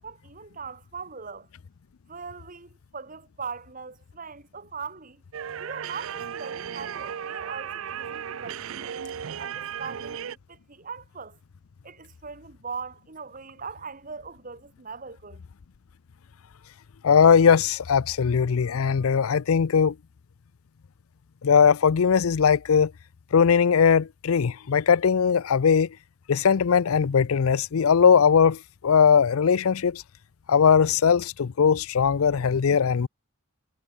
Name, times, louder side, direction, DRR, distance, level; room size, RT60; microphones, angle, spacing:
voice 1, 0.0-1.5 2.1-5.2 5.6-9.0 9.4-11.4 11.8-15.4, right 5 dB, 40° right, 1.4 m, -40 dB
sound 1, 5.3-10.4, right 8 dB, 65° right, 0.5 m, -35 dB
voice 2, 17.0-19.9 21.4-22.9 23.3-25.9 26.3-30.0 30.5-33.1, left 6 dB, 75° left, 0.5 m, -20 dB
head